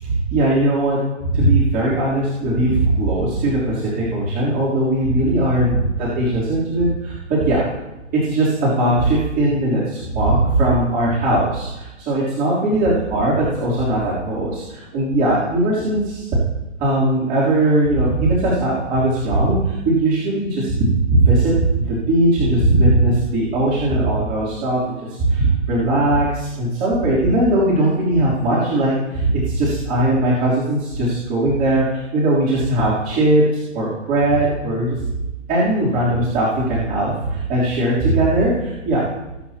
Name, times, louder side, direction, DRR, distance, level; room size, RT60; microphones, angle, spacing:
voice 1, 0.0-5.7 6.0-7.7 8.1-16.3 16.8-24.8 25.2-35.0 35.5-39.1, right 1 dB, 25° right, -8 dB, 3.6 m, -19 dB
20.0 x 9.1 x 3.0 m, 1.0 s
hypercardioid pair, 145°, 38 cm